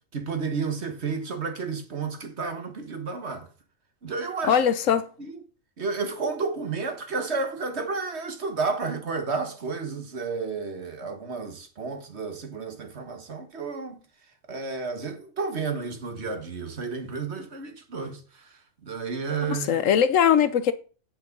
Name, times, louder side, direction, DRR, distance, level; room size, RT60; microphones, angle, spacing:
voice 1, 0.1-3.5 4.0-4.6 5.2-5.3 5.8-14.0 14.5-19.8, right 4 dB, 60° right, 1.7 m, -31 dB
voice 2, 4.4-5.1 19.5-20.7, left 8 dB, 85° left, 1.2 m, -21 dB
8.3 x 6.8 x 5.3 m
omnidirectional pair, 1.3 m